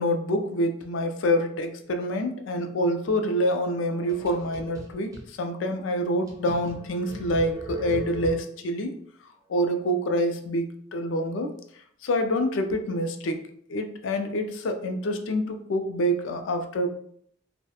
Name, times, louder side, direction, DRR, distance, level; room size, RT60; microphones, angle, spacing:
voice 1, 0.0-9.0 9.5-11.6 12.0-13.4 13.7-16.9, equal, 75° left, 6 dB, 0.4 m, -26 dB
sound 1, 3.9-5.3 5.8-5.9 6.3-8.7, right 1 dB, 20° right, 0.4 m, -39 dB
2.3 x 2.1 x 2.8 m, 0.64 s
head